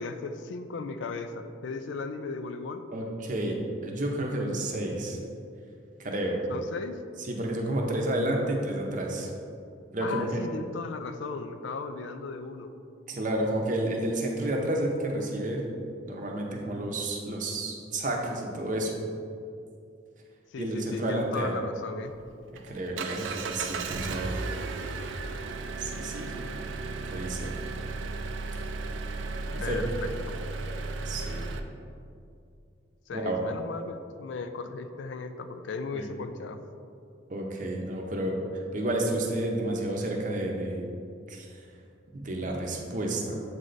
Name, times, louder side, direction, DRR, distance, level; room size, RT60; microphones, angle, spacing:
voice 1, 0.0-2.8 6.5-7.0 10.0-12.7 20.5-22.1 29.6-30.1 33.1-36.6, left 4 dB, 70° left, 8 dB, 0.4 m, -36 dB
voice 2, 2.9-3.6 3.8-5.2 6.0-6.4 7.2-9.3 9.9-10.4 13.1-15.7 16.0-19.0 20.6-21.6 22.5-24.3 25.8-26.3 27.1-27.5 29.5-29.8 31.0-31.5 33.1-33.4 35.9-36.1 37.3-40.8 41.3-41.6 42.1-43.4, right 1 dB, 40° right, 0 dB, 0.7 m, -30 dB
Engine, 22.1-31.6, right 3 dB, 75° right, 0.4 m, -35 dB
7.4 x 3.3 x 3.9 m, 2.5 s
head